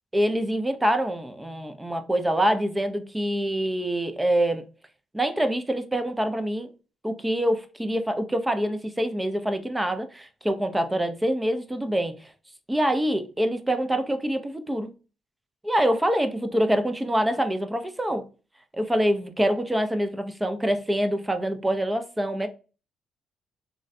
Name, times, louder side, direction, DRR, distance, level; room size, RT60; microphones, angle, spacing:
voice 1, 0.1-4.7 5.1-6.7 7.0-12.3 12.7-14.9 15.6-18.2 18.7-22.5, equal, 10° right, 0.5 m, -25 dB
3.7 x 2.2 x 2.5 m
cardioid pair, 90°, 0 cm